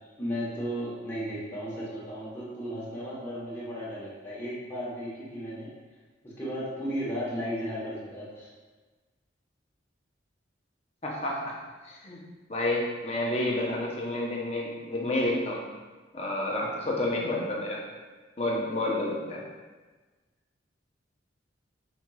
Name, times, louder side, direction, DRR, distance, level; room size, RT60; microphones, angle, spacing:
voice 1, 0.0-5.7 6.2-8.5, equal, 10° left, -8 dB, 1.0 m, -35 dB
voice 2, 11.0-11.5 11.8-12.2 12.5-15.6 16.1-17.8 18.4-19.4, left 1 dB, 30° left, -2 dB, 0.7 m, -29 dB
5.0 x 4.3 x 2.3 m, 1.3 s
head